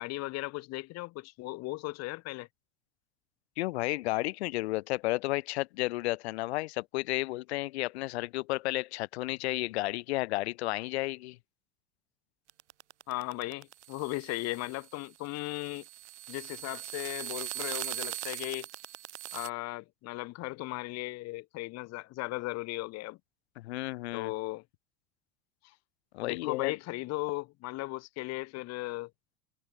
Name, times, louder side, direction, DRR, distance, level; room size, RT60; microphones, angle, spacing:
voice 1, 0.0-2.5 13.1-15.8 16.3-18.7 19.3-23.2 24.1-24.6 26.2-29.1, left 20 dB, 50° left, 1.8 m, -37 dB
voice 2, 3.6-11.4 23.6-24.3 26.1-26.7, left 19 dB, 70° left, 0.6 m, -32 dB
sound 1, 12.5-19.5, right 14 dB, 80° right, 0.9 m, -40 dB
hypercardioid pair, 85°, 33 cm